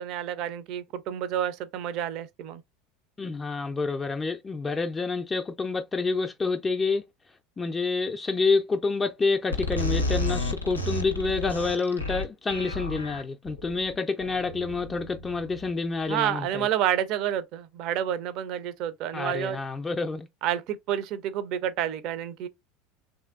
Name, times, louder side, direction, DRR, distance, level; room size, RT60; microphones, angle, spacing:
voice 1, 0.0-2.6 16.1-19.6 20.4-22.5, right 10 dB, 50° right, 0.4 m, -29 dB
voice 2, 3.2-7.0 7.6-16.7 19.1-20.3, left 4 dB, 20° left, 0.4 m, -28 dB
sound 1, 9.5-15.9, left 2 dB, 90° left, 0.5 m, -31 dB
3.1 x 2.6 x 2.4 m
figure-of-eight pair, 75°, 0 cm